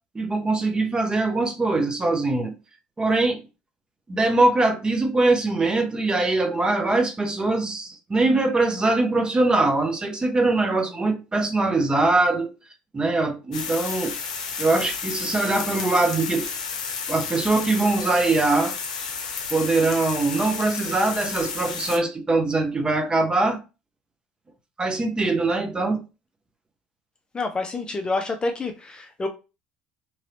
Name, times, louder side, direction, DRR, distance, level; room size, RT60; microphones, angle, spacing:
voice 1, 0.1-2.5 3.0-3.4 4.1-12.5 12.9-14.2 14.6-16.5 17.1-18.7 19.5-23.6 24.8-26.0, right 2 dB, 20° right, 0.8 m, -22 dB
sound 1, 13.5-22.0, left 5 dB, 85° left, 0.6 m, -32 dB
voice 2, 27.3-29.3, left 3 dB, 25° left, 0.6 m, -28 dB
3.1 x 2.7 x 2.8 m
hypercardioid pair, 70°, 4 cm